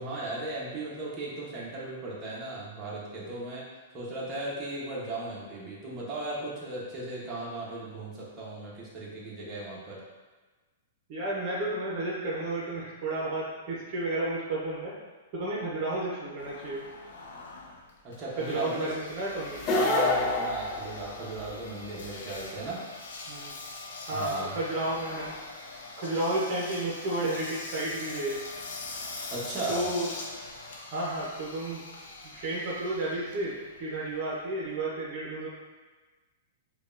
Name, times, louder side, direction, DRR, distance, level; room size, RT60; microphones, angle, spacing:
voice 1, 0.0-3.6 3.9-10.0 18.0-18.9 19.7-22.8 24.1-24.6 29.3-29.8, right 2 dB, 25° right, -7 dB, 1.1 m, -36 dB
voice 2, 11.1-14.9 15.3-16.9 18.4-19.6 23.3-23.5 24.1-25.3 26.0-28.4 29.7-30.1 30.9-31.8 32.3-35.5, right 1 dB, 45° right, -6 dB, 0.9 m, -32 dB
Engine, 16.4-34.8, left 3 dB, 75° left, 0.6 m, -43 dB
sound 1, 19.5-21.6, left 2 dB, 30° left, 0.5 m, -27 dB
4.9 x 2.4 x 2.6 m, 1.3 s
hypercardioid pair, 135°, 0 cm